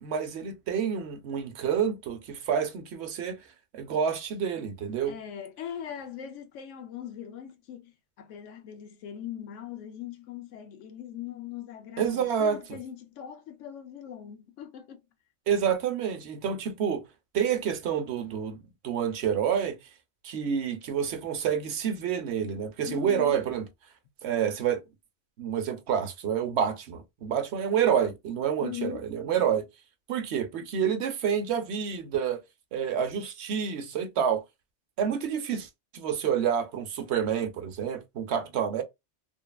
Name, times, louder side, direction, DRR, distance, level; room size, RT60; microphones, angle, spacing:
voice 1, 0.0-3.4 3.7-5.2 12.0-12.8 15.5-17.0 17.3-18.6 18.8-19.8 20.2-23.6 24.2-24.8 25.4-29.6 30.1-32.4 32.7-34.4 35.0-38.8, right 8 dB, 70° right, 0.8 m, -28 dB
voice 2, 5.1-15.0 22.8-23.4 28.6-29.1, left 10 dB, 90° left, 1.0 m, -40 dB
3.1 x 2.2 x 2.2 m
omnidirectional pair, 1.2 m